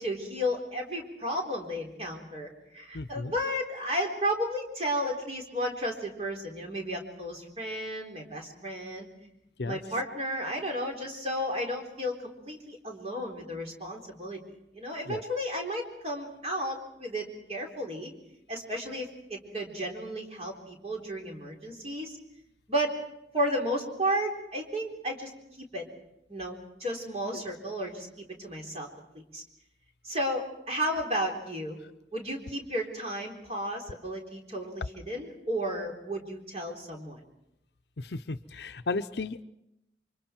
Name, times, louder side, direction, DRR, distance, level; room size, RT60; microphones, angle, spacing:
voice 1, 0.0-9.1 9.6-12.1 12.4-14.4 14.8-18.1 18.5-22.2 22.7-22.9 23.3-25.3 25.6-25.8 26.3-28.9 29.1-29.4 30.0-31.8 32.1-37.2, equal, 35° right, 1 dB, 3.9 m, -33 dB
voice 2, 2.9-3.3 9.6-9.8 15.1-15.2 27.3-27.4 38.0-39.4, left 3 dB, 70° left, 11 dB, 0.7 m, -34 dB
29.0 x 25.0 x 4.5 m, 0.83 s
head